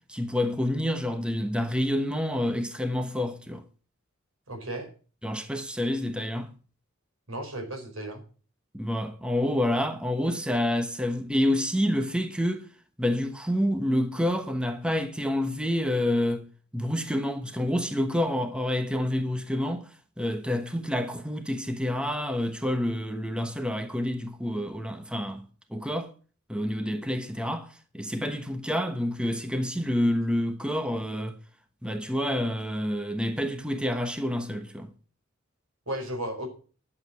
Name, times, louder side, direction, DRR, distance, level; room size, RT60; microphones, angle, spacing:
voice 1, 0.1-3.6 5.2-6.5 8.7-12.7 13.0-16.4 16.7-25.4 25.7-26.1 26.5-31.4 31.8-34.9, left 1 dB, 5° right, 1.1 m, -28 dB
voice 2, 4.5-4.9 7.3-8.2 35.9-36.5, right 1 dB, 85° right, 4.8 m, -34 dB
11.5 x 7.5 x 7.4 m
head